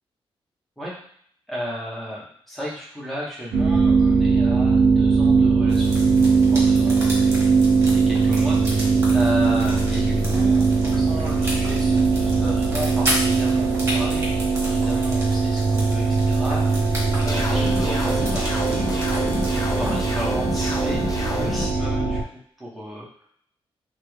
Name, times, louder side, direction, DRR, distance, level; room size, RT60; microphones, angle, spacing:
voice 1, 1.5-6.0 6.5-7.3 7.9-16.9 17.1-23.3, equal, ahead, -5 dB, 1.0 m, -34 dB
sound 1, 3.5-22.2, right 4 dB, 70° right, 0.5 m, -20 dB
sound 2, 5.7-20.1, equal, 25° right, 1.2 m, -34 dB
sound 3, 17.3-21.7, left 1 dB, 35° left, 0.5 m, -28 dB
3.0 x 2.2 x 3.1 m, 0.64 s
wide cardioid pair, 120°, 10 cm